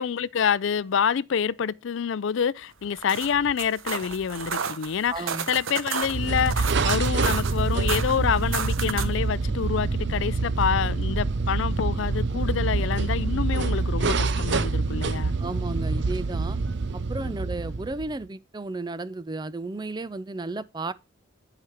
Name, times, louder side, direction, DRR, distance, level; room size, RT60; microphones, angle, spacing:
voice 1, 0.0-15.3 17.2-17.3, left 7 dB, 70° left, 0.4 m, -27 dB
sound 1, 2.8-9.2, right 6 dB, 80° right, 0.9 m, -33 dB
voice 2, 5.1-5.5 15.4-16.6 16.9-20.9, right 2 dB, 20° right, 0.4 m, -33 dB
sound 2, 6.0-18.2, right 3 dB, 60° right, 0.6 m, -26 dB
10.5 x 5.0 x 5.7 m
head